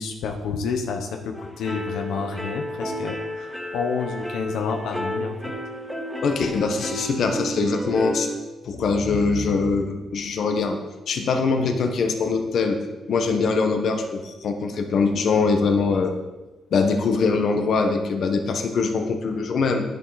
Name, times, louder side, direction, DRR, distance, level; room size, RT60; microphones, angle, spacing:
voice 1, 0.0-5.3 11.5-11.7, left 5 dB, 85° left, 4 dB, 1.1 m, -29 dB
sound 1, 1.3-8.4, equal, 5° left, 1.9 m, -32 dB
voice 2, 6.2-8.3 8.6-10.8 11.1-12.8 13.1-16.2 16.7-19.8, left 4 dB, 55° left, 5 dB, 1.3 m, -22 dB
10.5 x 10.5 x 4.2 m, 1.1 s
cardioid pair, 135°, 0 cm